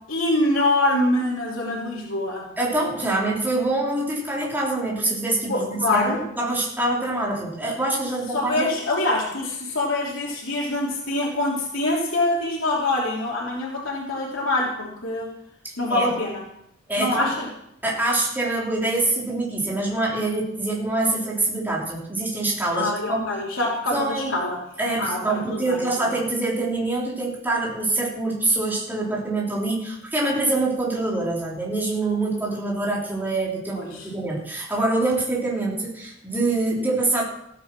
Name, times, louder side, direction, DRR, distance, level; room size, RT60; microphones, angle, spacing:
voice 1, 0.1-2.4 5.5-6.2 8.3-15.3 15.8-16.4 17.0-17.5 22.7-24.6 25.0-25.8 33.7-34.1, left 2 dB, 80° left, -4 dB, 3.1 m, -24 dB
voice 2, 2.6-8.7 15.9-16.1 16.9-17.3 17.8-23.3 23.9-24.3 24.8-37.2, right 2 dB, 10° right, -4 dB, 3.5 m, -25 dB
15.5 x 9.2 x 6.1 m, 0.75 s
head